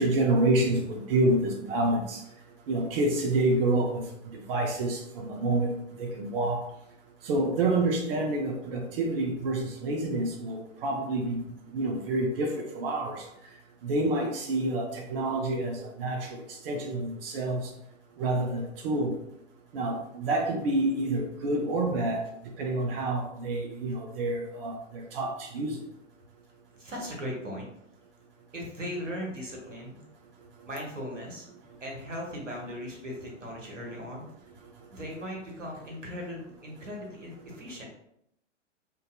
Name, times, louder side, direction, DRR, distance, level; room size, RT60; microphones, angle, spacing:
voice 1, 0.0-2.2 2.7-4.0 4.3-5.7 6.0-6.6 7.2-11.4 11.7-13.2 13.8-17.7 18.2-19.1 19.7-22.2 22.6-25.8, right 2 dB, 50° right, 2 dB, 0.5 m, -28 dB
voice 2, 26.8-27.7 28.5-30.0 30.7-31.4 31.8-34.3 34.9-37.8, equal, 90° right, -2 dB, 0.9 m, -38 dB
2.6 x 2.2 x 2.3 m, 0.76 s
figure-of-eight pair, 100°, 36 cm